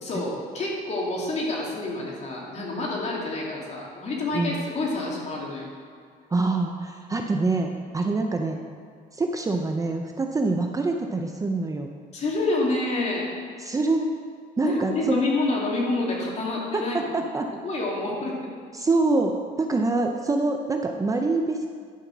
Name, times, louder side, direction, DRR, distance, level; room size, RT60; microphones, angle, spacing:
voice 1, 0.0-5.7 12.1-13.3 14.6-17.2 17.6-18.5, left 2 dB, 40° left, -3 dB, 2.7 m, -28 dB
voice 2, 6.3-8.6 9.1-11.9 13.6-14.1 14.6-15.2 16.7-17.5 18.8-21.7, right 3 dB, 20° right, 3 dB, 0.6 m, -25 dB
11.0 x 5.7 x 6.1 m, 2.1 s
cardioid pair, 110°, 17 cm